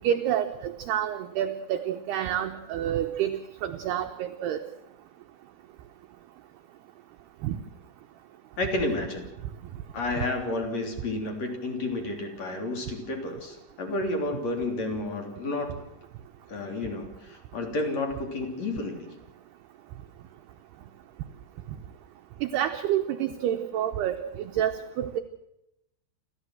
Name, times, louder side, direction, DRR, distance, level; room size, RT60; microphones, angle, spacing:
voice 1, 0.0-4.6 7.4-7.6 22.4-25.2, right 10 dB, 75° right, 6 dB, 2.5 m, -28 dB
voice 2, 8.6-9.3 9.9-15.8 16.5-19.1, left 2 dB, 40° left, 3 dB, 3.9 m, -31 dB
28.5 x 14.0 x 7.8 m, 0.84 s
omnidirectional pair, 5.7 m